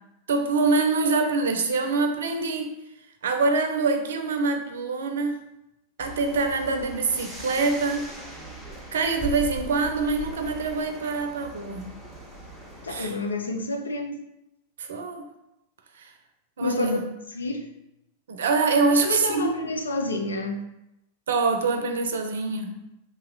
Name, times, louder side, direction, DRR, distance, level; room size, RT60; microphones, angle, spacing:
voice 1, 0.3-2.8 3.2-5.4 6.0-8.1 8.9-12.0 12.9-13.1 14.8-15.2 16.0-16.1 16.6-17.0 18.3-19.5 21.3-22.8, right 3 dB, 65° right, 6 dB, 0.5 m, -25 dB
sound 1, 6.0-13.2, right 2 dB, 10° left, 1.2 m, -39 dB
voice 2, 12.8-14.2 16.6-17.0 17.3-17.7 19.0-20.6, left 2 dB, 75° left, 4 dB, 0.5 m, -29 dB
2.9 x 2.9 x 3.9 m, 0.85 s
figure-of-eight pair, 90°, 0 cm